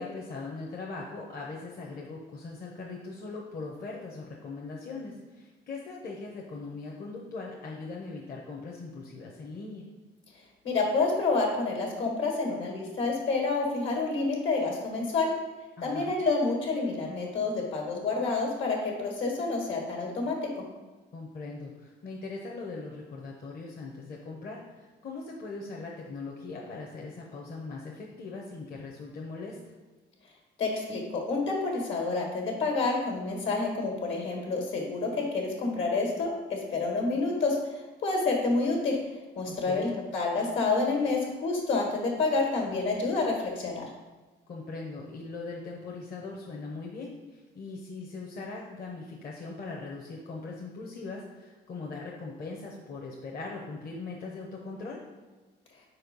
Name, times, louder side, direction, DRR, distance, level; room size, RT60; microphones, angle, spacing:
voice 1, 0.0-9.8 15.8-16.2 21.1-29.6 39.5-40.0 44.5-55.0, left 3 dB, 50° left, -1 dB, 0.9 m, -40 dB
voice 2, 10.6-15.3 15.8-20.3 30.6-37.6 38.0-39.0 39.4-43.8, left 3 dB, 70° left, 0 dB, 1.8 m, -28 dB
4.6 x 4.3 x 5.4 m, 1.2 s
cardioid pair, 90°, 20 cm